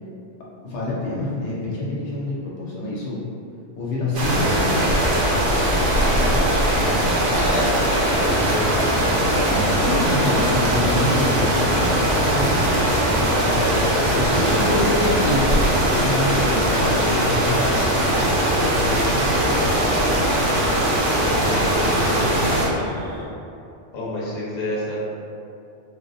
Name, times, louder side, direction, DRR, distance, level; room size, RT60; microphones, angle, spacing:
voice 1, 0.6-3.3 3.8-4.8 9.5-13.5 14.1-17.6, left 2 dB, 75° left, -5 dB, 0.9 m, -26 dB
sound 1, 4.1-22.7, right 1 dB, 80° right, 1.0 m, -20 dB
voice 2, 6.0-9.7 13.2-14.9 18.7-20.1 21.4-22.8 23.9-25.0, left 1 dB, 45° left, -6 dB, 0.8 m, -31 dB
sound 2, 8.3-23.2, equal, 30° right, 0.5 m, -32 dB
4.2 x 2.0 x 2.6 m, 2.5 s
omnidirectional pair, 1.2 m